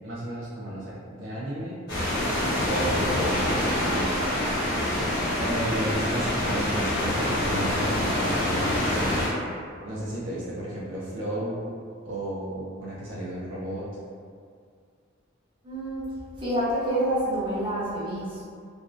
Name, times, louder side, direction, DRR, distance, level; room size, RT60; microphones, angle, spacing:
voice 1, 0.0-1.8 2.6-3.7 5.4-9.3 9.8-11.7 12.0-13.9, right 1 dB, 70° right, -7 dB, 0.4 m, -33 dB
sound 1, 1.9-9.3, left 1 dB, 55° left, 1.1 m, -26 dB
voice 2, 15.6-16.0 16.4-18.4, right 1 dB, 25° right, -11 dB, 0.8 m, -27 dB
2.5 x 2.0 x 2.4 m, 2.2 s
head